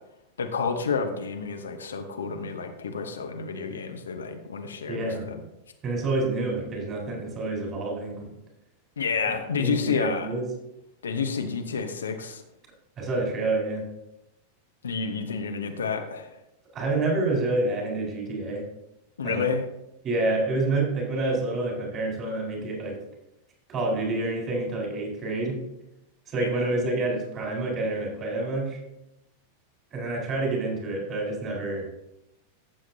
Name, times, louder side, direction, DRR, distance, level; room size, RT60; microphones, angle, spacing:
voice 1, 0.4-5.4 9.0-10.3 11.0-12.4 14.8-16.3 19.2-19.7 26.4-26.6, left 5 dB, 70° left, 6 dB, 1.0 m, -30 dB
voice 2, 4.9-5.3 5.8-8.3 9.5-10.5 13.0-13.8 16.7-18.6 19.2-19.5 20.0-23.0 23.7-25.6 26.3-28.8 29.9-31.9, right 2 dB, 30° right, -1 dB, 4.0 m, -28 dB
14.0 x 7.6 x 2.7 m, 0.87 s
figure-of-eight pair, 90°, 0 cm